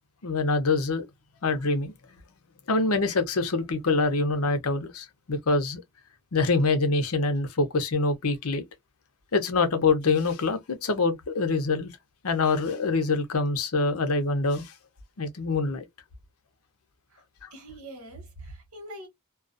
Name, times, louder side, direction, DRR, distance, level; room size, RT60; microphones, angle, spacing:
voice 1, 0.2-1.0 1.4-1.9 2.7-5.8 6.3-8.6 9.3-11.9 12.2-14.7 15.2-15.8, left 3 dB, 80° left, 0.7 m, -25 dB
voice 2, 17.5-19.1, right 1 dB, 75° right, 1.1 m, -43 dB
2.3 x 2.3 x 2.5 m
head